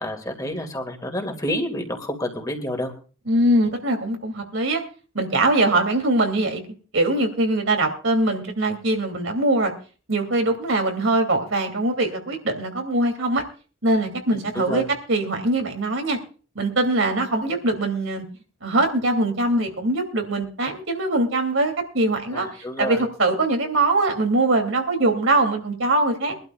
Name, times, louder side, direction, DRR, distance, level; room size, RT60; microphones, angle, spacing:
voice 1, 0.0-2.9 14.3-14.9 22.3-23.0, left 1 dB, 20° left, 4 dB, 2.3 m, -29 dB
voice 2, 3.3-4.8 5.1-6.6 6.9-9.7 10.1-13.4 13.8-16.2 16.5-18.2 18.6-22.5 22.8-26.3, right 2 dB, 75° right, 4 dB, 2.8 m, -22 dB
24.0 x 12.0 x 2.4 m, 0.37 s
head